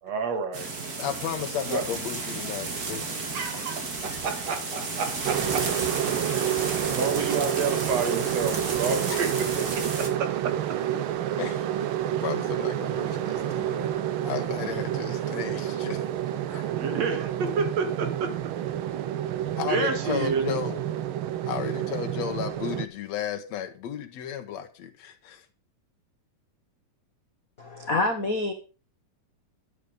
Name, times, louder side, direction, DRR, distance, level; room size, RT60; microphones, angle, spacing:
voice 1, 0.0-0.7 1.7-1.8 3.1-5.7 6.7-9.3 9.7-10.6 16.7-18.5 19.7-20.6, right 5 dB, 60° right, 2.9 m, -30 dB
sound 1, 0.5-10.1, right 3 dB, 35° right, 2.3 m, -33 dB
voice 2, 1.0-3.1 3.5-3.7 4.2-4.3 6.5-6.8 9.1-9.3 11.4-11.9 12.2-14.0 14.2-16.7 19.6-20.8 21.5-25.5, left 9 dB, 65° left, 2.6 m, -34 dB
sound 2, 5.2-22.9, right 11 dB, 85° right, 1.1 m, -29 dB
voice 3, 27.6-28.5, left 2 dB, 45° left, 1.1 m, -26 dB
12.0 x 9.7 x 5.2 m
omnidirectional pair, 3.5 m